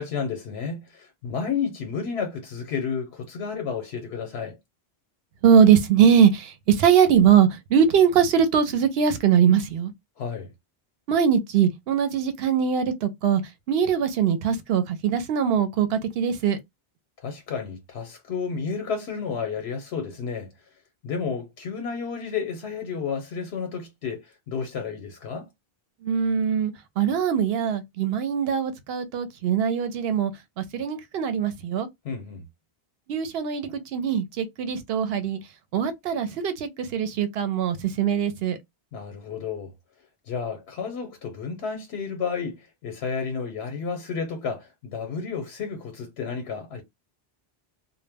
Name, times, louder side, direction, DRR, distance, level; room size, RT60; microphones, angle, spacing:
voice 1, 0.0-4.6 10.2-10.5 17.2-20.5 21.0-25.5 32.0-32.4 38.9-39.7 40.3-46.8, left 5 dB, 85° left, 0.9 m, -31 dB
voice 2, 5.4-9.9 11.1-13.4 13.7-16.6 26.0-30.3 30.6-31.9 33.1-35.4 35.7-38.6, right 8 dB, 75° right, 0.8 m, -21 dB
2.1 x 2.0 x 3.3 m
omnidirectional pair, 1.1 m